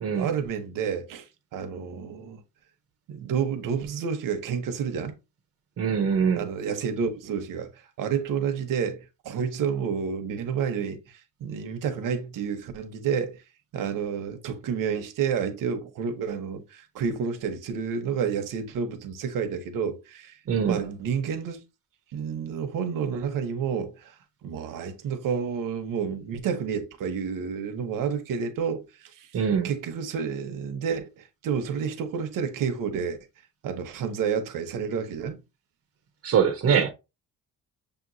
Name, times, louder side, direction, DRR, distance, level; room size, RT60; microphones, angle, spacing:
voice 1, 0.1-1.3 1.5-2.4 3.1-5.2 6.3-13.4 13.7-20.4 20.7-21.6 22.1-24.2 24.4-29.3 29.6-33.2 33.6-35.4 36.6-36.9, right 6 dB, 80° right, 0.9 m, -30 dB
voice 2, 5.8-6.4 20.5-20.8 29.3-29.7 36.2-36.9, right 7 dB, 45° right, 0.7 m, -23 dB
6.8 x 2.9 x 2.6 m
cardioid pair, 160°, 32 cm